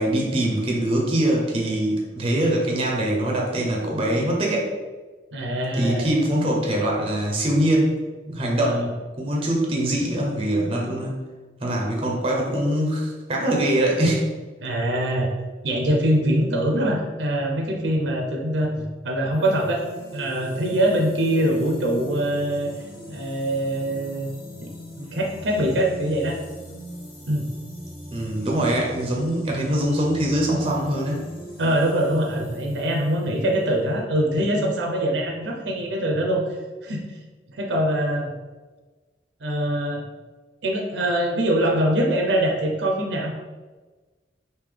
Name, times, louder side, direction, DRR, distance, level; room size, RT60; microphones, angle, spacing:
voice 1, 0.0-4.7 5.7-8.9 9.2-11.2 11.6-14.3 28.1-31.3, right 1 dB, 30° right, -1 dB, 0.6 m, -23 dB
voice 2, 5.3-6.1 8.6-8.9 14.6-15.3 15.6-19.8 20.1-22.7 23.1-24.3 24.6-24.7 25.0-26.4 27.3-27.5 31.6-36.4 36.8-37.0 37.5-38.3 39.4-40.0 40.6-43.3, right 1 dB, 80° right, 1 dB, 0.6 m, -23 dB
sound 1, 19.3-34.0, right 1 dB, 50° left, 1.1 m, -41 dB
3.7 x 2.7 x 3.3 m, 1.3 s
head